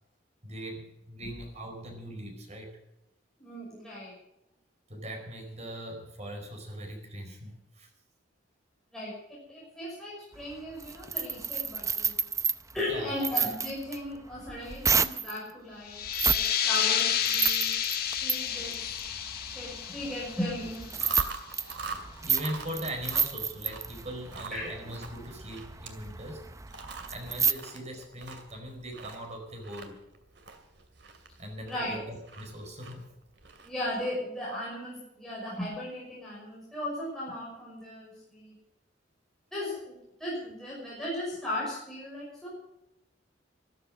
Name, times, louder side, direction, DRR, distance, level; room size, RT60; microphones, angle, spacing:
voice 1, 0.4-2.8 4.9-7.9 12.9-13.2 15.9-16.0 21.8-26.4 27.1-30.0 31.4-33.1, equal, 40° right, 4 dB, 4.7 m, -40 dB
voice 2, 3.4-4.2 8.9-12.2 12.7-16.0 16.3-17.7 18.2-18.9 19.5-21.2 24.5-24.8 31.6-32.0 33.6-38.5 39.5-42.5, left 1 dB, 5° left, -7 dB, 5.9 m, -37 dB
sound 1, 10.3-15.4 16.1-16.5 16.8-27.5, right 6 dB, 15° right, 0.6 m, -31 dB
sound 2, 15.9-21.3, left 9 dB, 55° left, 1.3 m, -30 dB
Chewing mastication, 20.8-34.0, right 4 dB, 70° right, 2.4 m, -44 dB
14.0 x 13.5 x 6.3 m, 0.88 s
head